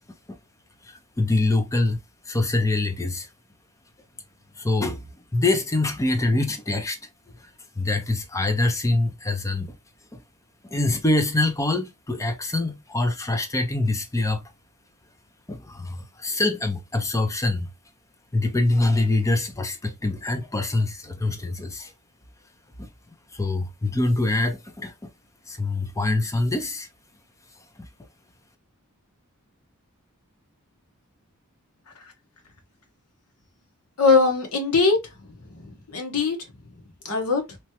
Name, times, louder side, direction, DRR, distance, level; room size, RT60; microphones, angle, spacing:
voice 1, 0.8-2.0 2.3-3.3 4.6-5.0 5.3-7.0 7.8-9.7 10.1-10.2 10.7-14.4 15.5-17.7 18.3-21.9 22.8-22.9 23.3-25.1 25.5-26.9 27.8-27.9, left 2 dB, 15° left, 0.5 m, -24 dB
voice 2, 34.0-35.0 35.5-36.4 37.0-37.4, left 4 dB, 85° left, 1.0 m, -21 dB
3.0 x 2.3 x 2.8 m
head